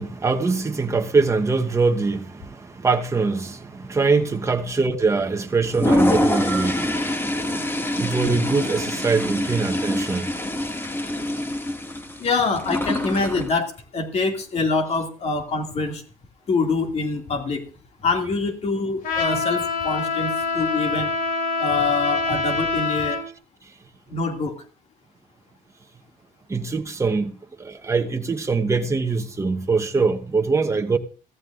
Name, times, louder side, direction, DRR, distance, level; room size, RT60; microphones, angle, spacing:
voice 1, 0.0-10.3 26.5-27.3 27.6-31.0, right 4 dB, 20° right, 1.1 m, -23 dB
Toilet flush, 5.6-13.5, left 1 dB, 15° left, 1.6 m, -25 dB
voice 2, 12.2-16.0 16.5-17.6 18.0-21.1 21.6-23.2 24.1-24.5, left 3 dB, 45° left, 2.3 m, -25 dB
Trumpet, 19.0-23.2, left 4 dB, 70° left, 3.1 m, -25 dB
16.5 x 14.5 x 2.5 m
supercardioid pair, 85°, 15 cm